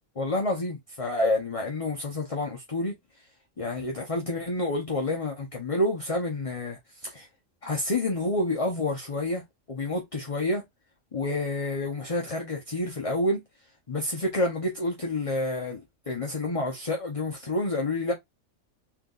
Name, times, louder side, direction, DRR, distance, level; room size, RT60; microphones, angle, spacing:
voice 1, 0.2-2.9 3.6-7.3 7.6-9.4 9.7-10.6 11.1-13.4 13.9-18.1, left 2 dB, 30° left, 0.8 m, -29 dB
4.4 x 3.5 x 2.4 m
omnidirectional pair, 1.3 m